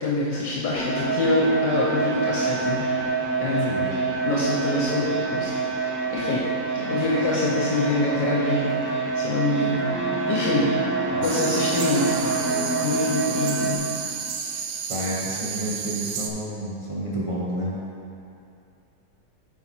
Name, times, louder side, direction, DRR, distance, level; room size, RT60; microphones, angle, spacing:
voice 1, 0.0-2.8 3.4-3.9 4.2-8.8 9.1-9.9 10.3-10.7 11.0-12.4 12.8-13.8, left 2 dB, 80° left, -5 dB, 1.4 m, -25 dB
sound 1, 0.7-13.8, right 4 dB, 35° left, 1.3 m, -27 dB
voice 2, 3.5-3.9 11.1-11.3 14.9-17.7, right 1 dB, 25° right, -7 dB, 0.8 m, -30 dB
sound 2, 6.7-9.5 9.7-13.3, right 1 dB, 50° right, 1.1 m, -34 dB
sound 3, 11.2-16.3, right 7 dB, 75° right, 1.1 m, -32 dB
8.2 x 4.7 x 4.4 m, 2.6 s
omnidirectional pair, 1.9 m